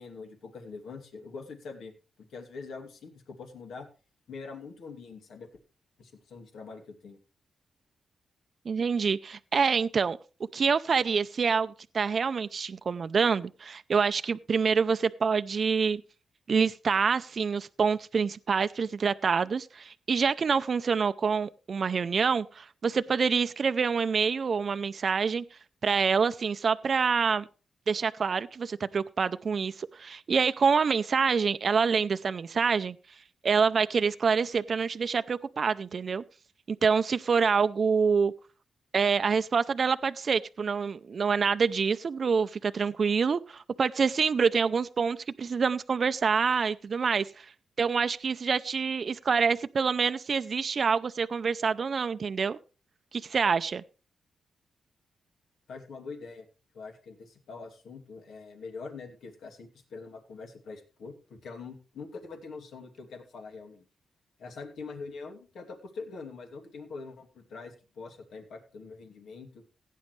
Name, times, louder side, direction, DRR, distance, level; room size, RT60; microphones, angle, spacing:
voice 1, 0.0-1.9 2.2-3.9 4.3-5.5 6.0-7.2 55.7-56.5 56.7-63.8 64.4-69.6, left 4 dB, 85° left, 2.7 m, -44 dB
voice 2, 8.7-10.2 10.5-16.0 16.5-25.4 25.8-27.5 27.9-33.0 33.4-36.2 36.8-38.3 38.9-47.5 47.8-52.6 53.1-53.8, right 5 dB, 50° right, 0.5 m, -26 dB
16.5 x 9.3 x 3.2 m
cardioid pair, 95°, 0 cm